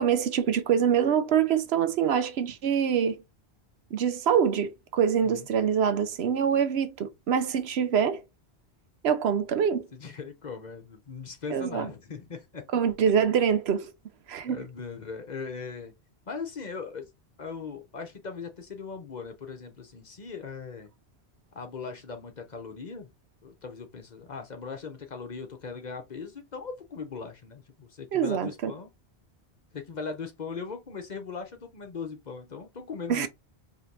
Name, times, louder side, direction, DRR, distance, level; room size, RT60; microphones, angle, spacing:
voice 1, 0.0-3.2 3.9-8.2 9.0-9.9 11.5-11.9 12.7-13.9 14.3-14.6 28.1-28.7 33.1-33.3, right 8 dB, 75° right, 0.8 m, -25 dB
voice 2, 9.9-12.6 14.5-15.9 16.3-17.1 17.4-20.9 21.5-23.1 23.4-28.9 29.7-33.3, left 5 dB, 45° left, 0.8 m, -39 dB
4.9 x 2.9 x 2.7 m
omnidirectional pair, 1.1 m